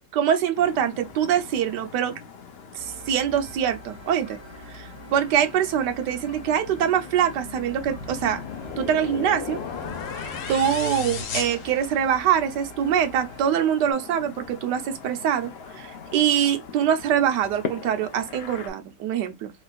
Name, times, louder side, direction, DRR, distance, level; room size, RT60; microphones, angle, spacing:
voice 1, 0.1-2.2 2.7-4.4 4.7-8.4 8.8-9.6 10.2-19.5, right 9 dB, 75° right, 1.3 m, -24 dB
sound 1, 0.5-18.7, left 6 dB, 65° left, 0.6 m, -42 dB
sound 2, 2.8-13.4, right 2 dB, 5° right, 1.7 m, -46 dB
sound 3, 7.8-12.4, left 6 dB, 90° left, 1.7 m, -34 dB
3.3 x 3.1 x 2.3 m
omnidirectional pair, 1.9 m